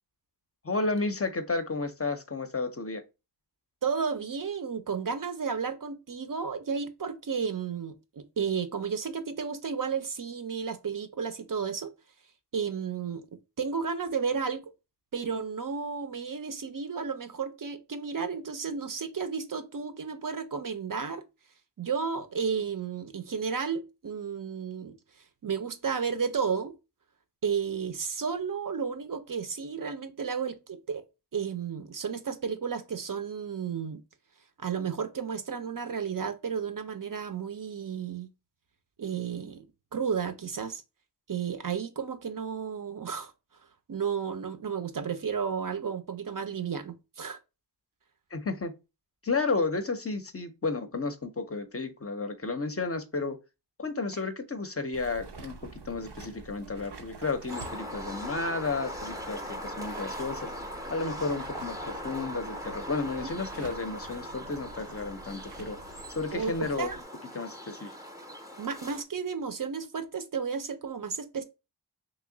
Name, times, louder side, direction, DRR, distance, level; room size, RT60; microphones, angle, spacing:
voice 1, 0.6-3.0 48.3-48.7 49.2-53.4 53.8-60.5 60.9-65.8 66.2-66.9 67.3-67.9, left 3 dB, 35° left, 0.5 m, -32 dB
voice 2, 3.8-11.9 12.5-14.6 15.1-21.2 21.8-25.0 25.4-26.8 27.4-31.0 31.3-34.0 34.6-38.3 39.0-39.7 39.9-40.8 41.3-43.3 43.9-47.4 54.1-54.2 66.3-67.0 68.6-71.4, right 6 dB, 55° right, 0.5 m, -32 dB
sound 1, 54.9-67.0, right 3 dB, 90° right, 0.7 m, -47 dB
sound 2, 57.5-69.0, equal, 10° right, 0.5 m, -40 dB
3.0 x 2.8 x 3.7 m
wide cardioid pair, 55°, 40 cm